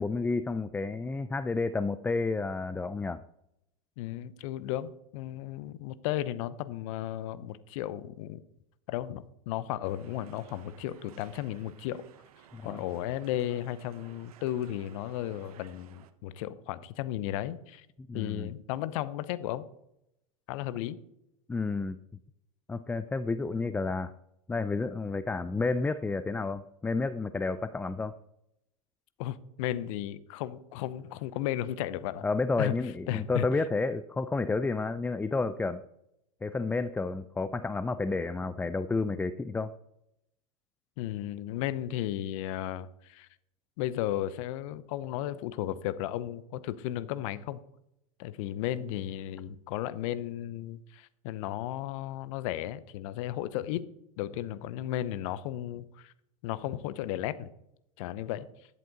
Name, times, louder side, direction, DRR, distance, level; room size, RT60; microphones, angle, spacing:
voice 1, 0.0-3.2 12.5-12.8 18.0-18.5 21.5-22.0 22.7-24.1 24.5-28.1 32.2-35.8 36.4-39.7, left 3 dB, 10° left, 13 dB, 0.4 m, -31 dB
voice 2, 4.0-8.4 8.9-12.1 12.6-17.9 18.1-19.7 20.5-21.0 29.2-32.2 32.6-32.7 33.1-33.5 41.0-43.3 43.8-47.6 48.2-53.9 54.2-56.1 56.4-57.5 58.0-58.5, left 13 dB, 60° left, 16 dB, 0.8 m, -34 dB
sound 1, 9.8-16.1, right 10 dB, 70° right, 0.9 m, -55 dB
11.0 x 7.7 x 4.0 m, 0.80 s
hypercardioid pair, 95°, 19 cm